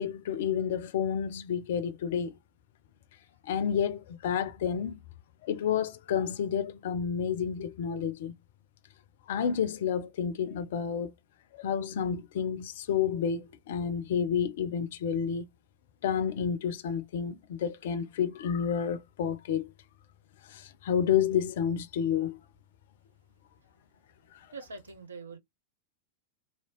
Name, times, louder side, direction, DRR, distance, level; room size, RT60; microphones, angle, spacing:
voice 1, 0.0-2.4 3.4-5.0 5.4-8.3 9.3-11.1 11.5-15.5 16.0-19.7 20.5-22.4, left 8 dB, 55° left, 0.4 m, -30 dB
voice 2, 24.5-25.4, right 3 dB, 70° right, 0.8 m, -43 dB
2.8 x 2.8 x 2.9 m
figure-of-eight pair, 90°, 0 cm